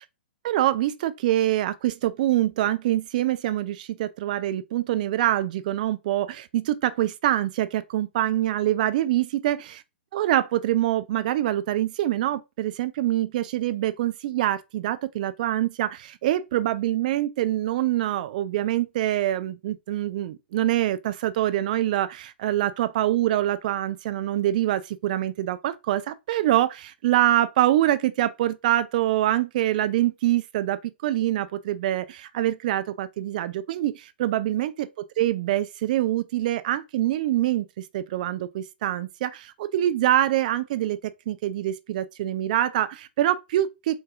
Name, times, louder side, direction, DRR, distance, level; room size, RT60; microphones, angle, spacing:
voice 1, 0.4-9.8 10.1-34.9 35.2-44.0, right 13 dB, 45° right, 0.4 m, -25 dB
3.9 x 3.8 x 2.4 m
figure-of-eight pair, 110°, 6 cm